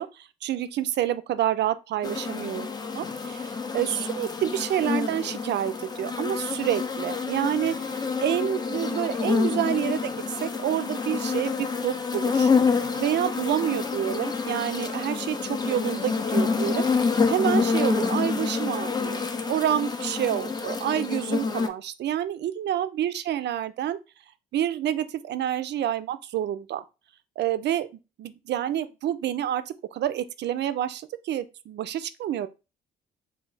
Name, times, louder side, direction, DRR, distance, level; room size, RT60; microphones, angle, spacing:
voice 1, 0.0-2.7 2.9-16.9 17.3-19.2 19.5-24.0 24.5-26.8 27.4-27.9 28.2-32.5, right 11 dB, 60° right, 0.4 m, -28 dB
sound 1, 2.0-21.7, left 5 dB, 20° left, 0.5 m, -27 dB
3.4 x 2.3 x 3.2 m
cardioid pair, 90°, 20 cm